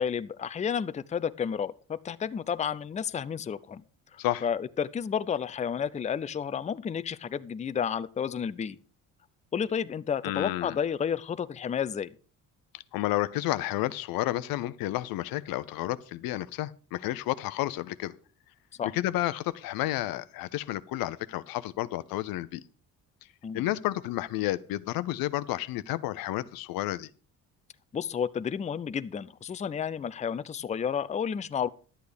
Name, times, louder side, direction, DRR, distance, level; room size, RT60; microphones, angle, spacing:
voice 1, 0.0-3.8 4.1-8.8 9.5-12.1 18.8-18.9 23.4-23.6 27.9-31.7, left 7 dB, 20° left, 0.5 m, -31 dB
voice 2, 10.2-10.8 12.9-18.1 18.8-22.6 23.5-27.1, left 15 dB, 85° left, 0.7 m, -31 dB
11.5 x 8.3 x 5.1 m
cardioid pair, 105°, 34 cm